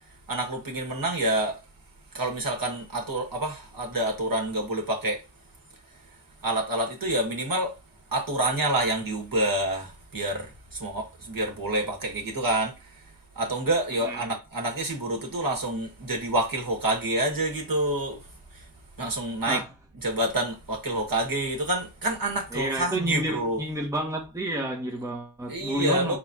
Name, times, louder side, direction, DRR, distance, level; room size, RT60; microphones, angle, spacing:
voice 1, 0.3-1.6 2.1-5.2 6.4-7.7 8.1-12.7 13.4-18.2 19.0-19.6 20.0-23.6 25.5-26.2, right 1 dB, 50° right, 2.1 m, -27 dB
voice 2, 14.0-14.4 19.5-19.7 22.5-26.2, right 1 dB, 5° right, 1.3 m, -30 dB
4.3 x 4.2 x 2.9 m
cardioid pair, 45°, 44 cm